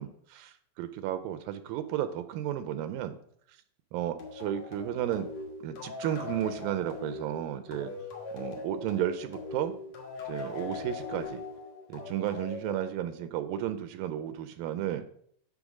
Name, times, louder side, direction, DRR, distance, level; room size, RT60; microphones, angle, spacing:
voice 1, 0.0-3.2 3.9-5.3 5.6-7.9 8.3-9.8 10.3-11.4 11.9-15.0, right 11 dB, 80° right, 10 dB, 2.2 m, -33 dB
sound 1, 4.2-13.4, left 4 dB, 55° left, 2.5 m, -41 dB
10.0 x 3.7 x 6.1 m, 0.65 s
omnidirectional pair, 4.1 m